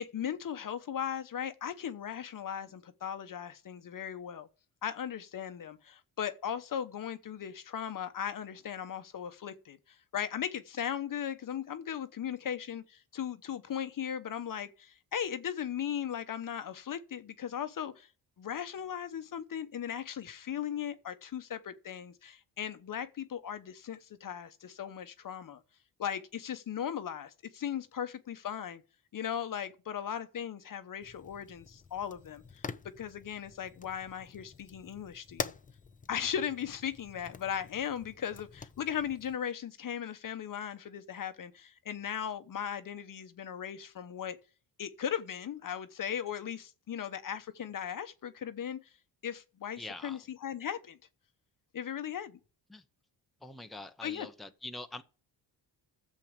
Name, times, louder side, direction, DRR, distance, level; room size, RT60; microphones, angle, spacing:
voice 1, 0.0-4.5 4.8-18.1 18.4-25.6 26.0-28.8 29.1-35.5 36.1-44.4 44.8-48.8 49.2-51.0 51.7-52.4 54.0-54.3, left 9 dB, 50° left, 1.0 m, -37 dB
Fire, 31.0-39.4, left 5 dB, 20° left, 0.5 m, -46 dB
voice 2, 49.8-50.2 52.7-52.8 53.4-55.0, left 2 dB, ahead, 0.9 m, -44 dB
13.0 x 7.6 x 5.2 m
cardioid pair, 110°, 41 cm